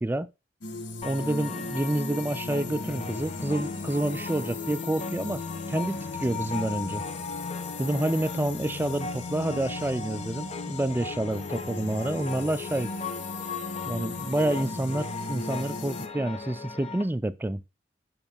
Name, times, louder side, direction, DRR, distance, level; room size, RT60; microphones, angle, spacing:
sound 1, 0.6-16.1, left 3 dB, 70° left, 0.9 m, -37 dB
sound 2, 1.0-17.0, left 4 dB, 35° left, 0.6 m, -39 dB
voice 1, 1.0-5.4 5.7-7.0 7.8-12.9 13.9-17.6, right 1 dB, 10° right, 0.3 m, -28 dB
7.0 x 5.8 x 3.4 m
head